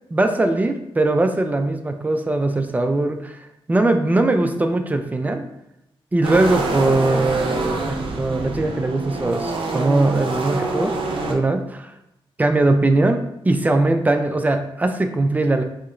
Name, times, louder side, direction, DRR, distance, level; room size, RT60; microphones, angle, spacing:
voice 1, 0.1-5.4 6.1-10.9 11.3-11.9 12.4-15.6, right 2 dB, 15° right, 6 dB, 0.3 m, -20 dB
sound 1, 6.2-11.3, right 2 dB, 65° right, 0.5 m, -26 dB
4.1 x 2.8 x 2.5 m, 0.85 s
wide cardioid pair, 125°, 9 cm